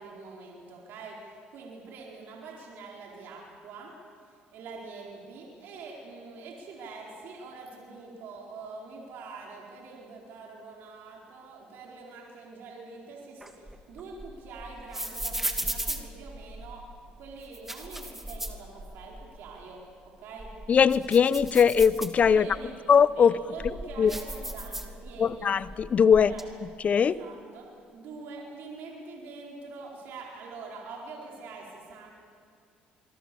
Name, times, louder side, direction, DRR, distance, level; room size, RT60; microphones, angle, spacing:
voice 1, 0.0-3.9 4.2-16.9 17.2-20.5 22.2-22.8 23.1-25.5 26.3-26.5 27.0-32.1, right 4 dB, 70° right, -2 dB, 4.6 m, -45 dB
sound 1, 13.4-16.8 17.4-19.3 19.6-19.7 20.2-22.6 23.2-25.3 25.6-26.4, right 1 dB, 10° right, 2.5 m, -37 dB
voice 2, 20.7-22.5 22.9-23.4 24.0-24.1 25.2-26.3 26.8-27.1, left 7 dB, 45° left, 18 dB, 0.7 m, -20 dB
26.5 x 22.5 x 7.1 m, 2.3 s
supercardioid pair, 85°, 3 cm